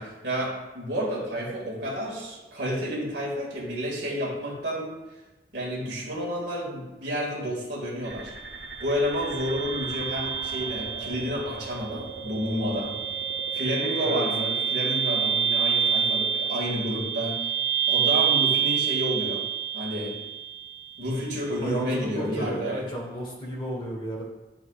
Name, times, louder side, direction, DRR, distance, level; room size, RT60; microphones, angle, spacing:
voice 1, 0.0-4.9 5.5-8.3 8.8-12.9 13.5-17.4 17.9-19.4 19.7-20.1 21.0-22.8, equal, 80° right, -4 dB, 2.1 m, -30 dB
sound 1, 8.0-21.0, right 7 dB, 65° right, 0.7 m, -28 dB
voice 2, 21.6-24.3, right 1 dB, 30° left, -2 dB, 1.3 m, -33 dB
10.5 x 4.1 x 2.4 m, 1.1 s
head